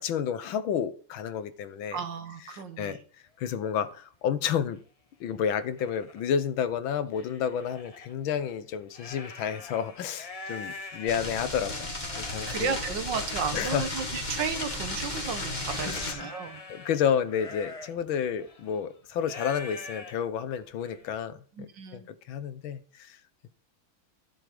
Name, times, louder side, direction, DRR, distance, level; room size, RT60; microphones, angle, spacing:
voice 1, 0.0-2.0 2.5-3.0 3.4-4.8 5.2-12.7 13.5-13.9 15.8-16.3 16.7-23.2, left 8 dB, 80° left, 13 dB, 1.7 m, -31 dB
voice 2, 1.9-3.0 12.5-16.6 21.6-22.1, right 6 dB, 65° right, 9 dB, 1.8 m, -33 dB
sound 1, 3.3-3.4 3.9-4.1 4.8-4.9 5.3-6.2 6.7-8.1 8.7-21.2, left 3 dB, 40° left, 0.5 m, -45 dB
sound 2, 11.1-16.1, left 2 dB, 20° left, 2.1 m, -34 dB
11.5 x 7.4 x 5.2 m, 0.42 s
omnidirectional pair, 2.2 m